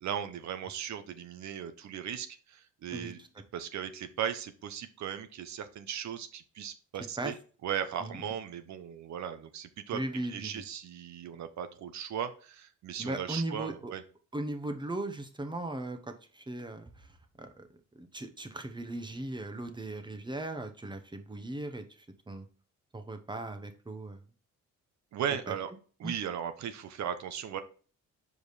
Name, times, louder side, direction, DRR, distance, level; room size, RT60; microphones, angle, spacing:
voice 1, 0.0-3.2 3.5-7.3 7.6-14.0 25.1-25.7 26.0-27.6, right 9 dB, 65° right, 10 dB, 0.9 m, -37 dB
voice 2, 2.9-3.3 7.2-7.3 8.0-8.3 9.9-10.6 13.0-13.9 14.3-17.7 17.9-22.5 22.9-24.2 25.5-25.6 26.0-26.1, right 2 dB, 15° right, 6 dB, 1.0 m, -38 dB
5.1 x 5.0 x 4.1 m, 0.39 s
cardioid pair, 90°, 30 cm